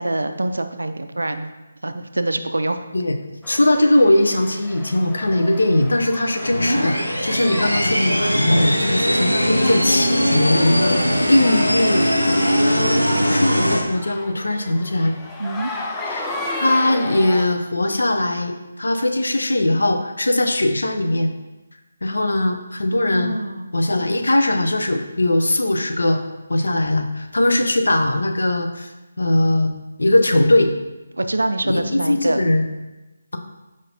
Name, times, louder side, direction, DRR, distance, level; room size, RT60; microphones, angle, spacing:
voice 1, 0.0-1.5 1.8-2.8 7.4-7.6 15.4-15.7 23.1-23.7 31.1-32.4, right 2 dB, 70° right, 8 dB, 0.3 m, -25 dB
sound 1, 3.4-17.5, left 2 dB, 10° left, 0.3 m, -35 dB
voice 2, 3.5-12.1 12.6-15.1 16.1-21.3 22.0-23.3 23.7-26.2 26.5-28.9 29.2-29.7 30.0-30.8 31.6-32.7, left 1 dB, 65° left, 5 dB, 0.5 m, -20 dB
sound 2, 6.4-13.8, equal, 85° left, 0.8 m, -20 dB
4.8 x 3.9 x 2.7 m, 1.1 s
figure-of-eight pair, 150°, 0 cm